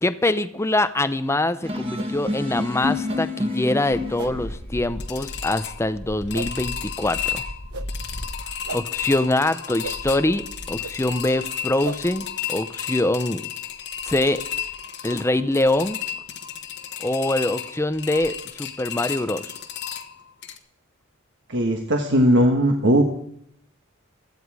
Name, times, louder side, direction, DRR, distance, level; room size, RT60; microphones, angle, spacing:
voice 1, 0.0-7.4 8.7-13.5 14.0-14.4 15.0-16.0 17.0-19.5, left 1 dB, 10° left, 12 dB, 0.6 m, -24 dB
sound 1, 1.6-4.5, left 2 dB, 25° right, 1.9 m, -28 dB
sound 2, 1.9-2.1 3.0-3.2 4.1-4.3 5.1-5.3 6.3-6.5 7.7-7.9 8.6-8.8 9.8-10.0 10.8-10.9 11.8-12.0, right 5 dB, 90° right, 0.8 m, -34 dB
sound 3, 3.9-20.6, left 7 dB, 50° left, 1.2 m, -33 dB
voice 2, 21.5-23.0, equal, 55° right, 2 dB, 1.4 m, -18 dB
16.5 x 13.0 x 4.8 m, 0.70 s
head